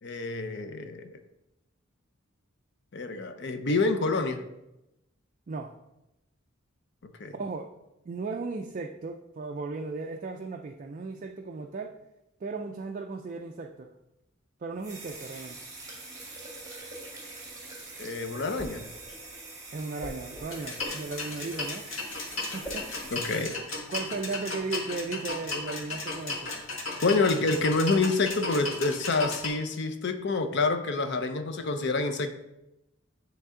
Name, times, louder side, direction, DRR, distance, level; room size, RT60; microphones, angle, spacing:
voice 1, 0.0-1.2 2.9-4.4 7.2-7.3 18.0-18.8 23.1-23.5 27.0-32.3, left 3 dB, 55° left, 8 dB, 0.6 m, -27 dB
voice 2, 7.3-7.7 8.0-11.9 12.4-13.9 14.6-15.6 19.7-21.9 22.5-22.9 23.9-26.5, right 3 dB, 40° right, 3 dB, 0.3 m, -36 dB
sound 1, 14.8-23.4, right 2 dB, 20° right, 1.7 m, -44 dB
sound 2, 16.4-23.2, equal, 5° left, 0.7 m, -45 dB
sound 3, 20.5-29.5, left 3 dB, 70° left, 1.6 m, -35 dB
9.4 x 3.3 x 3.7 m, 0.91 s
head